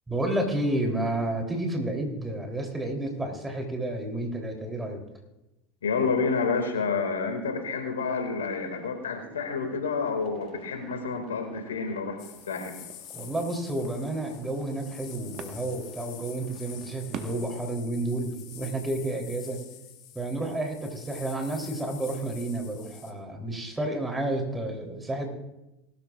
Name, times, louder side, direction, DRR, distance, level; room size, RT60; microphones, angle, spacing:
voice 1, 0.1-5.0 13.1-19.6 20.1-25.3, right 1 dB, 15° right, 3 dB, 3.3 m, -31 dB
voice 2, 5.8-12.2 12.5-12.8, left 4 dB, 80° left, 5 dB, 2.1 m, -29 dB
sound 1, 7.8-17.5, right 8 dB, 50° right, 1.4 m, -48 dB
sound 2, 12.2-23.1, left 10 dB, 50° left, 1.8 m, -47 dB
20.0 x 13.0 x 2.4 m, 0.95 s
hypercardioid pair, 80°, 0 cm